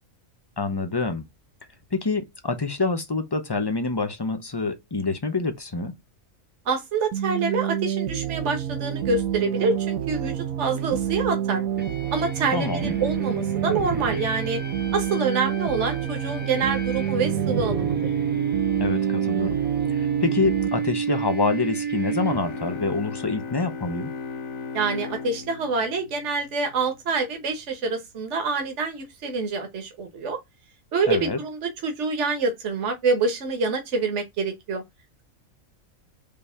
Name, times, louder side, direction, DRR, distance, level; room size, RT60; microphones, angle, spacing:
voice 1, 0.6-1.3 1.9-6.0 12.5-13.0 18.8-19.6 19.9-24.1 31.1-31.4, left 3 dB, 25° left, 0.7 m, -26 dB
voice 2, 6.6-11.6 12.1-14.6 14.9-18.0 24.7-30.4 30.9-34.8, right 4 dB, 60° right, 1.6 m, -26 dB
sound 1, 7.1-20.7, right 10 dB, 90° right, 1.3 m, -28 dB
sound 2, 11.8-22.8, right 6 dB, 10° right, 1.1 m, -30 dB
sound 3, 22.2-26.8, left 5 dB, 75° left, 1.4 m, -36 dB
5.2 x 3.4 x 5.6 m
omnidirectional pair, 1.4 m